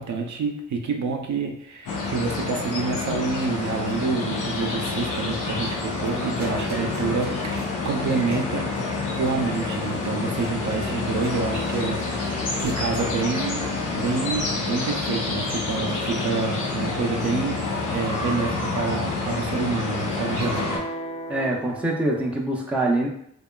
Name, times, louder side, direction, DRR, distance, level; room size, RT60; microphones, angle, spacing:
voice 1, 0.0-8.7 9.2-13.7 13.9-20.7, right 4 dB, 70° right, 3 dB, 0.5 m, -28 dB
sound 1, 1.9-20.8, left 3 dB, 90° left, 0.6 m, -28 dB
sound 2, 5.7-15.1 15.7-17.3 17.7-18.9 20.4-22.3, right 1 dB, 30° left, 1.0 m, -40 dB
voice 2, 21.3-23.1, right 2 dB, 5° right, -2 dB, 0.5 m, -24 dB
2.8 x 2.2 x 2.2 m, 0.69 s
cardioid pair, 80°, 30 cm